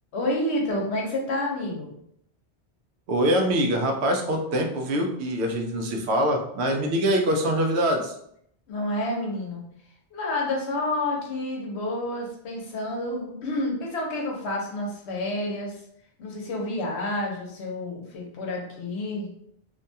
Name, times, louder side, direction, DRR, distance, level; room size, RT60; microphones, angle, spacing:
voice 1, 0.1-1.9 8.7-9.6 10.1-15.8 16.2-19.3, left 1 dB, 80° left, 0 dB, 1.0 m, -29 dB
voice 2, 3.1-8.1, equal, 80° right, 3 dB, 0.8 m, -24 dB
2.6 x 2.2 x 2.6 m, 0.72 s
omnidirectional pair, 1.1 m